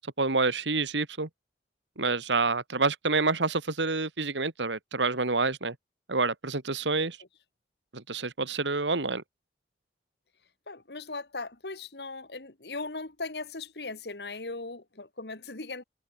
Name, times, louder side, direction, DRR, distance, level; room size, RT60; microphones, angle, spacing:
voice 1, 0.2-1.3 2.0-5.8 6.1-7.2 7.9-9.2, right 3 dB, 90° right, 2.2 m, -28 dB
voice 2, 10.7-15.8, left 3 dB, 65° left, 2.0 m, -38 dB
head